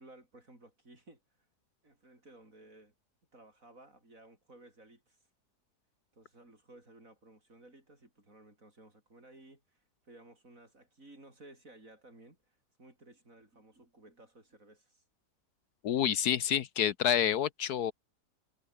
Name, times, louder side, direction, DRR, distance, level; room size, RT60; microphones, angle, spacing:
voice 1, 0.0-1.5 1.8-3.0 3.3-5.3 6.1-15.0 16.0-16.2, right 2 dB, 50° right, 7.1 m, -57 dB
voice 2, 15.8-17.9, left 9 dB, 70° left, 1.4 m, -28 dB
omnidirectional pair, 1.8 m